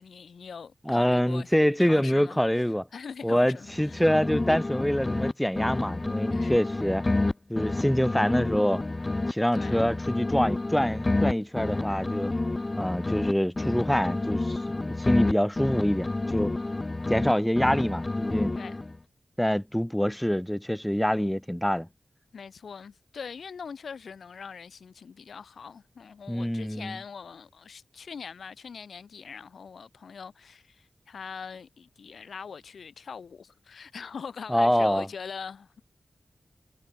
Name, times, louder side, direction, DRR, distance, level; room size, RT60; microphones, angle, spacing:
voice 1, 0.0-1.5 1.8-2.4 2.9-4.0 6.3-6.7 9.5-9.8 18.5-18.8 22.3-35.8, left 6 dB, 85° left, 3.8 m, -42 dB
voice 2, 0.9-2.9 3.2-7.0 7.5-8.8 9.3-12.3 12.8-16.5 17.1-18.6 19.4-21.9 26.3-27.0 34.5-35.1, equal, 5° left, 1.7 m, -25 dB
sound 1, 3.7-5.3 5.6-9.3 9.6-13.3 13.6-17.3 17.6-19.0, left 2 dB, 35° left, 0.4 m, -29 dB
cardioid pair, 40°, 0 cm